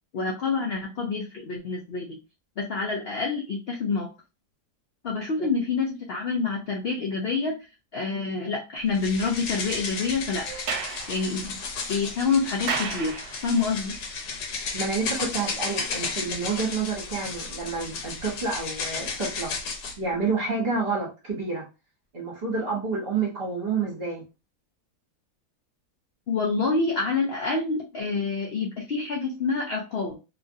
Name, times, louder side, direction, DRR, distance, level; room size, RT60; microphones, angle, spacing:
voice 1, 0.1-2.2 2.6-4.1 5.0-7.6 7.9-10.5 11.1-11.6 11.9-14.0 26.3-30.2, left 4 dB, 65° left, 0 dB, 0.6 m, -27 dB
sound 1, 8.9-20.0, left 4 dB, 85° left, 1.3 m, -34 dB
Sliding door, 10.5-13.7, right 5 dB, 75° right, 1.1 m, -34 dB
voice 2, 14.7-21.6 22.1-24.2, right 4 dB, 40° right, -3 dB, 1.2 m, -29 dB
2.9 x 2.5 x 2.6 m, 0.29 s
omnidirectional pair, 1.7 m